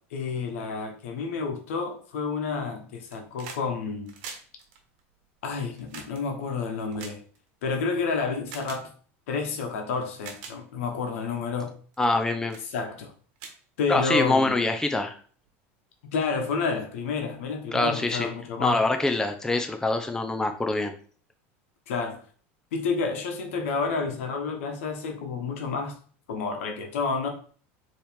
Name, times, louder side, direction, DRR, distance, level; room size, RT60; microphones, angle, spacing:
voice 1, 0.1-4.1 5.4-7.2 7.6-8.9 9.3-11.7 12.7-13.1 13.8-14.6 16.1-18.8 21.9-22.2 22.7-26.0 26.3-27.3, left 4 dB, 85° left, 3 dB, 1.1 m, -30 dB
sound 1, 2.9-3.7 3.9-7.8 8.5-8.8 9.6-9.7 10.1-10.6 11.2-11.4 11.9-12.2 12.5-12.7 13.0-13.1 13.4-14.3 15.5-15.6, right 5 dB, 70° right, 1.2 m, -43 dB
voice 2, 12.0-12.6 13.9-15.2 17.7-18.3 18.6-20.9, left 2 dB, 10° left, 5 dB, 0.6 m, -25 dB
4.4 x 3.2 x 3.5 m, 0.43 s
supercardioid pair, 105°, 7 cm